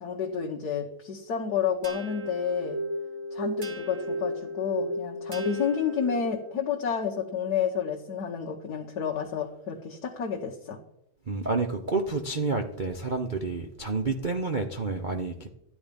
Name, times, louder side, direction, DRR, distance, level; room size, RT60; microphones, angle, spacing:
voice 1, 0.0-2.8 3.3-10.8, left 7 dB, 50° left, 1 dB, 1.5 m, -30 dB
sound 1, 1.8-6.6, equal, 40° right, 1.3 m, -34 dB
voice 2, 11.3-15.5, right 3 dB, 75° right, 4 dB, 0.4 m, -29 dB
13.0 x 9.8 x 5.3 m, 0.79 s
omnidirectional pair, 2.4 m